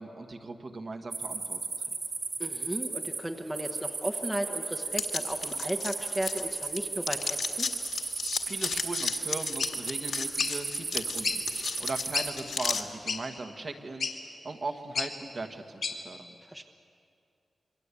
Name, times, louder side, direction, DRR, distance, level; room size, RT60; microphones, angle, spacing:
voice 1, 0.0-1.6 1.9-2.0 8.4-14.2 14.4-16.3, right 3 dB, 40° right, 5 dB, 1.5 m, -39 dB
sound 1, 1.1-12.3, right 4 dB, 60° right, 3.4 m, -35 dB
voice 2, 2.4-7.7 16.4-16.6, right 1 dB, 10° right, 5 dB, 1.0 m, -35 dB
sound 2, 4.9-6.8 7.0-12.8, left 5 dB, 80° left, 1.8 m, -34 dB
sound 3, 9.6-9.7 10.4-10.5 11.2-11.4 11.9-12.0 12.1-12.3 13.1-13.2 14.0-14.1 14.9-15.1 15.8-16.0, left 5 dB, 60° left, 2.5 m, -30 dB
28.0 x 23.0 x 8.4 m, 2.5 s
wide cardioid pair, 165°, 0 cm